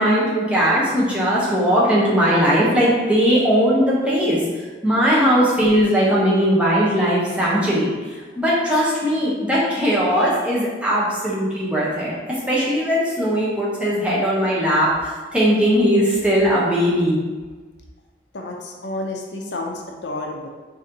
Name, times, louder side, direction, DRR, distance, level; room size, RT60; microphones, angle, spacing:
voice 1, 0.0-4.4 4.8-7.9 8.4-12.1 12.5-17.2, equal, 5° right, -7 dB, 0.9 m, -19 dB
voice 2, 18.3-20.5, left 2 dB, 65° left, 0 dB, 0.6 m, -30 dB
4.0 x 2.7 x 3.8 m, 1.3 s
head